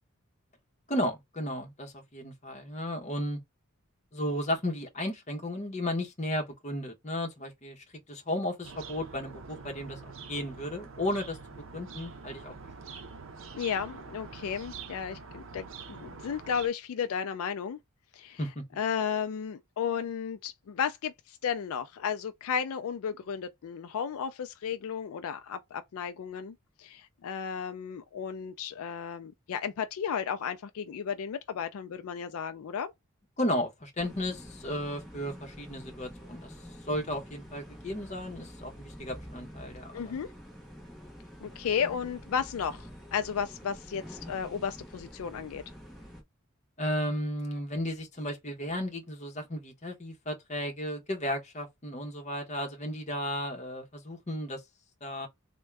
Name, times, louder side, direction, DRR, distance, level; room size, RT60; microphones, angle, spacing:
voice 1, 0.9-3.4 4.1-12.5 18.4-18.6 33.4-36.5 36.9-40.0 46.8-54.6 55.0-55.3, left 1 dB, 30° left, 0.9 m, -34 dB
sound 1, 8.6-16.7, right 5 dB, 60° right, 0.6 m, -45 dB
voice 2, 13.5-17.8 18.1-18.4 18.8-32.9 39.9-40.3 41.4-45.6, left 7 dB, 75° left, 0.4 m, -34 dB
sound 2, 34.0-46.2, equal, ahead, 0.8 m, -47 dB
3.5 x 2.2 x 3.3 m
head